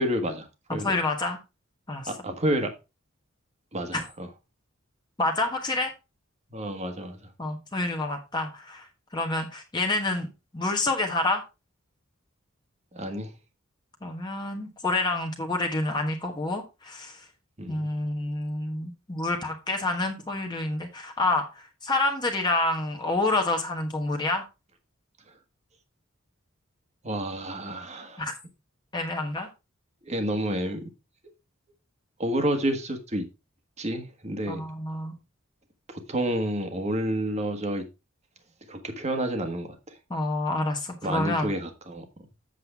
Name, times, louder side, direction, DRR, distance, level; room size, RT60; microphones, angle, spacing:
voice 1, 0.0-1.0 2.1-2.7 3.7-4.3 6.5-7.2 12.9-13.3 17.6-17.9 27.0-28.3 30.0-30.9 32.2-33.3 33.8-34.6 35.9-37.8 38.7-40.0 41.0-42.2, right 1 dB, 35° right, 1.6 m, -30 dB
voice 2, 0.8-1.4 1.9-2.1 3.9-4.0 5.2-5.9 7.4-8.9 9.1-10.3 10.5-11.4 14.0-17.2 17.7-24.4 28.2-28.3 28.9-29.5 34.5-35.1 40.1-41.5, left 2 dB, 20° left, 1.2 m, -28 dB
7.8 x 7.7 x 3.5 m
head